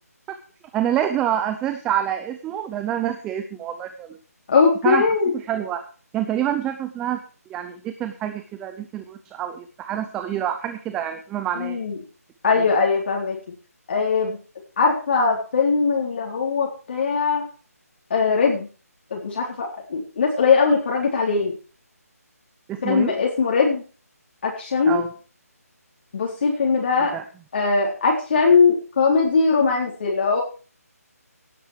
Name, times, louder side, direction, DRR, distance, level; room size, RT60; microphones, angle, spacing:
voice 1, 0.7-4.2 4.8-5.0 5.3-5.8 6.1-7.2 7.5-11.8 12.6-12.7 22.7-23.2 24.9-25.1 27.1-27.2, right 10 dB, 5° right, 8 dB, 0.6 m, -27 dB
voice 2, 4.5-5.3 11.6-12.0 12.4-13.4 13.9-14.4 14.8-17.5 18.1-18.7 19.1-21.5 22.8-23.8 24.4-25.0 26.1-27.2 27.5-30.4, left 5 dB, 45° left, -2 dB, 3.9 m, -20 dB
17.5 x 8.1 x 4.8 m, 0.37 s
figure-of-eight pair, 165°, 9 cm